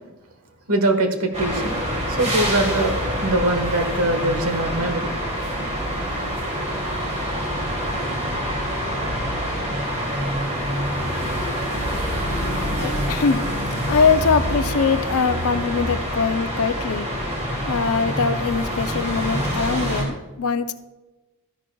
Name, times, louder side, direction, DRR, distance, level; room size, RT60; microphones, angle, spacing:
voice 1, 0.7-1.8 2.1-5.1, right 1 dB, 80° right, 6 dB, 1.3 m, -22 dB
sound 1, 1.3-20.0, equal, 30° right, 2.5 m, -26 dB
voice 2, 12.8-13.4 13.9-17.1 17.7-20.8, left 5 dB, 75° left, 11 dB, 0.6 m, -22 dB
13.5 x 11.0 x 2.3 m, 1.1 s
head